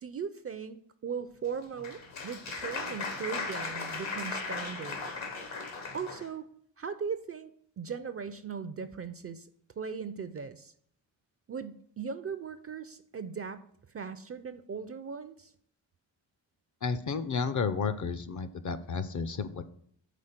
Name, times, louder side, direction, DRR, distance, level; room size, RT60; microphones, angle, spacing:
voice 1, 0.0-5.0 5.9-6.5 6.8-7.5 7.8-9.5 9.8-10.7 11.5-13.6 13.9-15.5, right 6 dB, 35° right, 11 dB, 0.4 m, -38 dB
Applause, 1.4-6.3, left 4 dB, 80° left, 1.3 m, -37 dB
voice 2, 16.8-19.6, left 5 dB, 40° left, 13 dB, 0.5 m, -32 dB
5.1 x 3.9 x 5.7 m, 0.64 s
cardioid pair, 65°, 46 cm